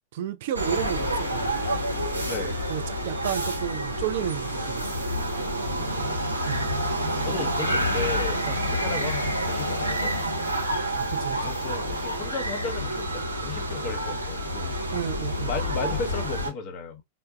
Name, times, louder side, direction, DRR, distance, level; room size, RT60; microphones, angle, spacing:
voice 1, 0.0-1.6 2.7-5.1 6.5-6.6 8.5-8.6 11.0-11.5 14.9-15.5, right 10 dB, 55° right, 0.4 m, -32 dB
sound 1, 0.5-16.5, equal, 85° right, 1.0 m, -28 dB
voice 2, 2.3-2.6 5.6-6.2 7.2-10.2 11.4-14.8 15.4-17.0, left 5 dB, 35° left, 0.8 m, -35 dB
4.4 x 2.1 x 2.2 m
figure-of-eight pair, 90°, 0 cm